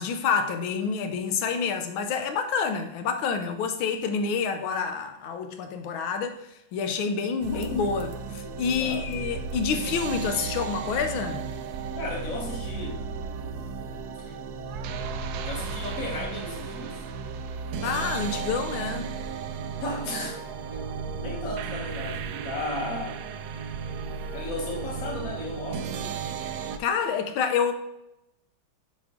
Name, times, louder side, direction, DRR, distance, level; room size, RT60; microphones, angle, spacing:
voice 1, 0.0-6.4 6.7-11.4 17.8-19.1 26.8-27.7, left 6 dB, 85° left, 7 dB, 1.6 m, -28 dB
sound 1, 7.4-26.8, right 5 dB, 75° right, 0.9 m, -34 dB
voice 2, 12.0-13.0 14.2-14.4 15.5-17.0 19.8-20.4 21.2-23.3 24.3-26.2, left 2 dB, 45° left, -1 dB, 1.7 m, -35 dB
7.3 x 4.3 x 3.7 m, 0.84 s
omnidirectional pair, 2.2 m